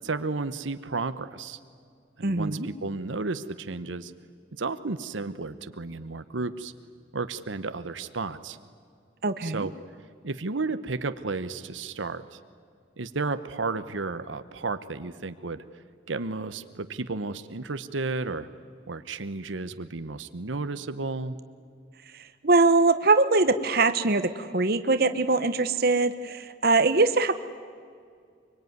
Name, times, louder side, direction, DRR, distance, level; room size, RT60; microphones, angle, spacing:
voice 1, 0.0-1.6 2.2-4.1 4.6-6.7 7.1-8.6 9.4-9.7 10.2-12.4 13.0-15.6 16.1-18.5 18.9-21.4, right 3 dB, 90° right, 12 dB, 1.0 m, -32 dB
voice 2, 2.2-2.7 9.2-9.7 22.4-27.4, right 3 dB, 50° right, 10 dB, 1.0 m, -22 dB
24.5 x 23.5 x 9.5 m, 2.2 s
head